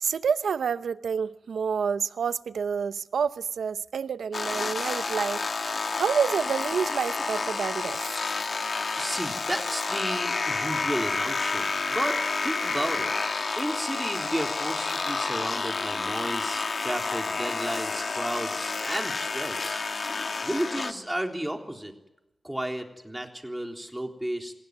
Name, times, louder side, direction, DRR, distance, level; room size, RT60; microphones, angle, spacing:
voice 1, 0.0-5.5 6.0-8.0, right 6 dB, 90° right, 0.8 m, -28 dB
sound 1, 4.3-20.9, left 4 dB, 50° left, 1.6 m, -30 dB
voice 2, 9.0-13.1 13.6-19.8 20.4-21.9 22.4-24.5, right 1 dB, 10° right, 3.6 m, -33 dB
27.0 x 17.0 x 9.5 m
wide cardioid pair, 90°, 0 cm